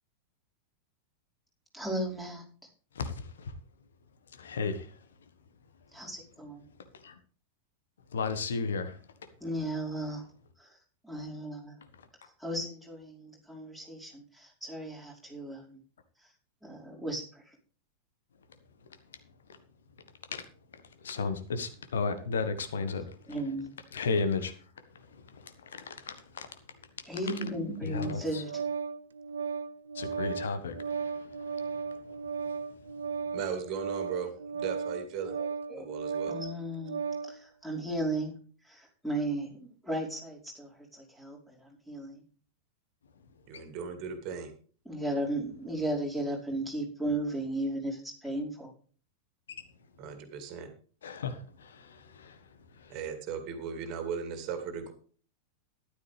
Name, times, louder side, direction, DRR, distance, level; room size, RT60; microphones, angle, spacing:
voice 1, 1.7-2.4 5.9-6.7 9.4-10.3 10.6-10.8 11.0-11.7 12.4-15.8 16.2-16.3 16.6-17.5 23.3-23.7 27.1-28.6 35.3-35.9 36.3-38.3 38.6-42.2 44.8-48.7, right 1 dB, ahead, 5.0 m, -35 dB
voice 2, 2.9-3.5 4.4-4.9 7.0-7.1 8.1-9.0 20.3-20.4 21.0-23.0 23.9-24.5 25.3-26.5 27.8-28.4 29.9-32.0 51.0-52.4 52.8-52.9, left 4 dB, 65° left, 1.4 m, -34 dB
Organ, 27.9-37.4, right 5 dB, 70° right, 0.6 m, -36 dB
voice 3, 33.3-35.3 35.8-36.3 43.5-44.5 50.0-50.7 52.9-54.9, right 6 dB, 40° right, 2.6 m, -37 dB
13.5 x 11.5 x 3.4 m
figure-of-eight pair, 90°, 0 cm